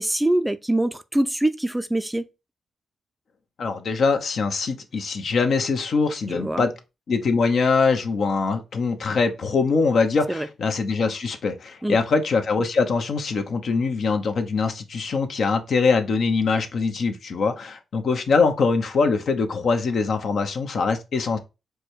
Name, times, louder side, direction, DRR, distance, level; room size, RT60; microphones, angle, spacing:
voice 1, 0.0-2.3 6.3-6.7 10.3-10.5 11.8-12.0, right 1 dB, 10° right, 0.4 m, -24 dB
voice 2, 3.6-6.7 7.1-21.4, left 4 dB, 65° left, 0.8 m, -23 dB
4.8 x 2.3 x 4.5 m
cardioid pair, 70°, 0 cm